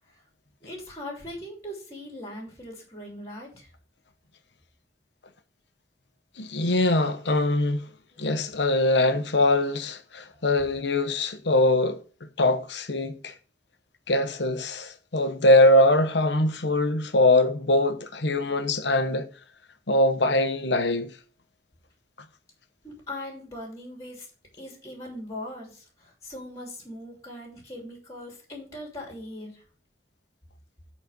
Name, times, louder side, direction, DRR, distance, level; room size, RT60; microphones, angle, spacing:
voice 1, 0.6-3.7 22.8-24.3 24.6-29.6, left 1 dB, 20° left, 3.0 m, -40 dB
voice 2, 6.4-7.9 8.2-12.0 12.4-13.3 14.1-19.3 19.9-21.1, left 1 dB, 85° left, 1.1 m, -22 dB
8.3 x 4.3 x 6.5 m
head